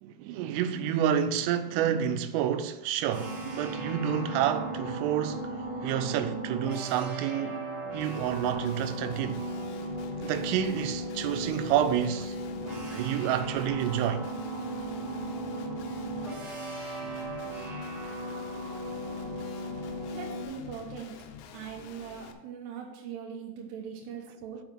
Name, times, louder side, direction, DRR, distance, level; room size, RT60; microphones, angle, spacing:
voice 1, 0.0-7.7 7.9-9.4 10.2-12.4 12.9-14.3, right 9 dB, 90° right, 3.2 m, -29 dB
sound 1, 3.1-20.4, right 1 dB, 45° right, 2.6 m, -36 dB
Guitar, 8.0-22.3, left 9 dB, 80° left, 2.7 m, -48 dB
voice 2, 20.1-21.1 21.5-24.6, right 7 dB, 75° right, 2.7 m, -41 dB
7.0 x 5.5 x 6.0 m
omnidirectional pair, 5.7 m